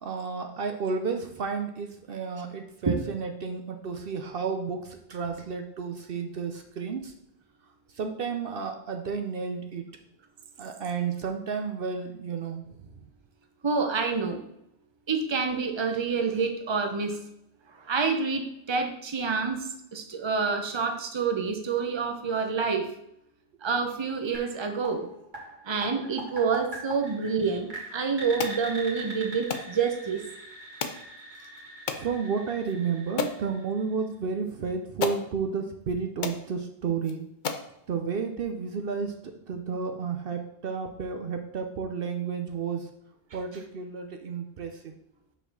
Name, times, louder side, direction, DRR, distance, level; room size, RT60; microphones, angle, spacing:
voice 1, 0.0-7.1 7.9-9.9 10.6-12.6 13.0-13.1 31.9-37.3 37.9-42.9 43.3-45.0, right 5 dB, 65° right, 5 dB, 0.8 m, -32 dB
voice 2, 13.6-14.4 15.1-17.2 17.7-22.9 23.6-25.1 25.6-30.2, right 5 dB, 30° right, 5 dB, 0.8 m, -28 dB
sound 1, 24.3-34.1, right 2 dB, 45° right, 1.9 m, -42 dB
sound 2, 28.4-28.6 29.5-29.7 30.8-31.0 31.9-32.1 32.7-32.8 33.2-33.4 34.5-34.6 35.0-35.2 35.9-36.0 36.2-36.4 37.0-37.1 37.4-37.7, left 5 dB, 55° left, 0.7 m, -31 dB
5.6 x 4.3 x 6.1 m, 0.81 s
omnidirectional pair, 1.1 m